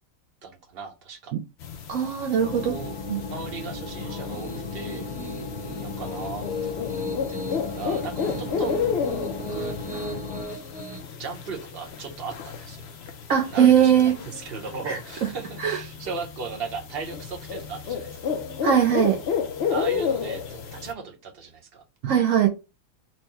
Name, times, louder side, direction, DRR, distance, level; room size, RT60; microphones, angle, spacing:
voice 1, 0.4-1.3 2.6-3.0 3.3-5.1 5.8-7.0 7.3-8.7 9.4-9.8 11.2-12.8 13.4-18.3 19.7-21.8, right 5 dB, 45° right, 1.1 m, -37 dB
sound 1, 1.6-20.9, left 6 dB, 60° left, 0.7 m, -32 dB
voice 2, 1.9-2.8 3.1-3.2 13.3-14.2 14.9-15.0 15.6-15.8 18.6-19.2 22.0-22.5, right 9 dB, 70° right, 1.0 m, -20 dB
sound 2, 2.4-10.4, left 3 dB, 45° left, 1.1 m, -36 dB
Piano, 4.1-11.0, left 1 dB, 10° right, 0.6 m, -37 dB
4.5 x 2.2 x 4.1 m
omnidirectional pair, 1.5 m